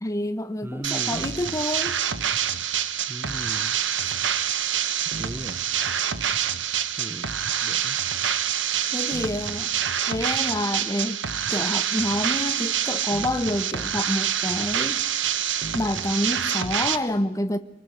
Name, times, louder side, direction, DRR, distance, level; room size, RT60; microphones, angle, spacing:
voice 1, 0.0-1.9 8.9-9.7 10.1-11.2 11.5-15.0 15.7-17.6, left 1 dB, 15° left, 1.0 m, -28 dB
voice 2, 0.6-1.3 3.1-3.8 5.2-5.6 7.0-8.0, equal, 10° right, 0.8 m, -37 dB
sound 1, 0.8-17.0, right 9 dB, 75° right, 1.3 m, -26 dB
26.0 x 24.0 x 6.4 m
head